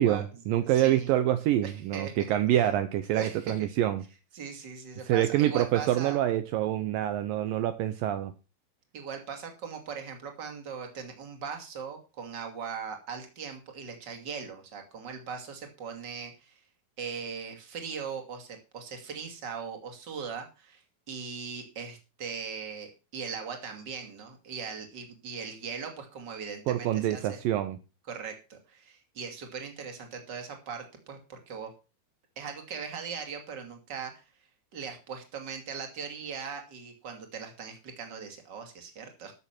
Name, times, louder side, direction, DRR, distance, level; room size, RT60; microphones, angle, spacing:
voice 1, 0.0-4.0 5.1-8.3 26.7-27.8, right 12 dB, 75° right, 11 dB, 2.4 m, -26 dB
voice 2, 0.6-1.1 1.6-2.2 2.5-2.7 3.1-3.7 4.3-6.2 8.9-16.6 17.0-27.4 28.1-31.7 32.4-34.3 34.7-39.3, right 6 dB, 30° right, 4 dB, 2.7 m, -40 dB
14.0 x 7.1 x 6.0 m, 0.31 s
omnidirectional pair, 4.3 m